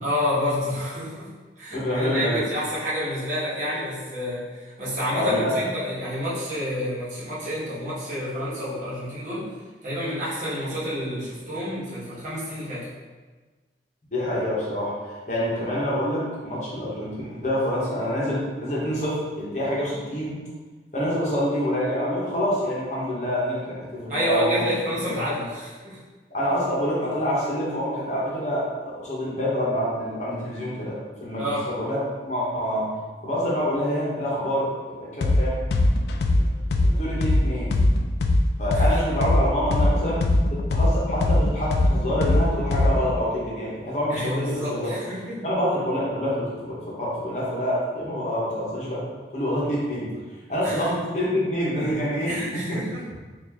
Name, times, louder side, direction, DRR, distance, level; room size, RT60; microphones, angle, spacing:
voice 1, 0.0-1.3 1.6-9.5 9.8-12.9 24.1-26.0 31.4-31.6 38.7-39.0 44.1-45.4 50.6-50.9 51.6-52.0 52.3-53.0, equal, 45° right, -9 dB, 1.1 m, -29 dB
voice 2, 1.7-2.4 5.1-5.5 14.1-20.4 20.9-24.6 25.0-25.2 26.3-32.0 32.2-32.9 33.2-35.5 36.4-36.5 36.8-37.7 38.6-40.2 40.5-44.9 45.4-49.0 49.3-50.1 50.5-52.8, equal, 40° left, -6 dB, 0.9 m, -26 dB
sound 1, 35.2-35.4 35.7-39.4 39.7-43.1, left 2 dB, 70° left, 0.3 m, -20 dB
4.2 x 2.5 x 2.8 m, 1.3 s
head